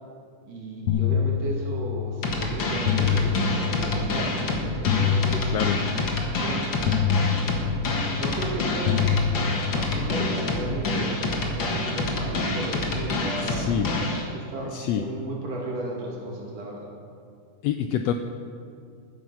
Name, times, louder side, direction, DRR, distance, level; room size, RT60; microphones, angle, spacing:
voice 1, 0.5-5.7 6.3-6.9 8.0-9.1 9.6-13.8 14.3-16.9, right 1 dB, 55° right, -2 dB, 3.3 m, -34 dB
sound 1, 0.9-2.0 2.9-4.0 4.9-6.0 6.9-8.0 8.9-10.0, left 8 dB, 70° left, 1.5 m, -25 dB
sound 2, 2.2-14.2, left 2 dB, 45° left, 1.8 m, -27 dB
voice 2, 13.4-13.9 14.7-15.0 17.6-18.1, left 10 dB, 90° left, 7 dB, 1.5 m, -26 dB
13.5 x 9.9 x 5.7 m, 2.3 s
omnidirectional pair, 3.5 m